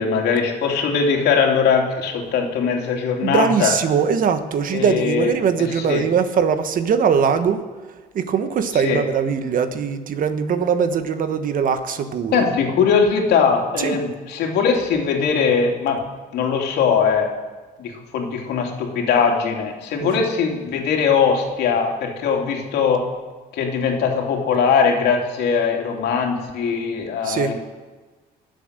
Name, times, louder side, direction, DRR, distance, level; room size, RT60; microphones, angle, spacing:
voice 1, 0.0-3.7 4.7-6.1 8.8-9.0 12.3-16.0 16.3-17.3 17.8-23.1 23.5-27.5, left 6 dB, 75° left, 1 dB, 2.9 m, -20 dB
voice 2, 3.2-7.6 8.1-12.5 13.8-14.0 20.0-20.2 27.2-27.5, right 7 dB, 55° right, 9 dB, 1.4 m, -21 dB
22.5 x 7.8 x 6.7 m, 1.3 s
cardioid pair, 110°, 17 cm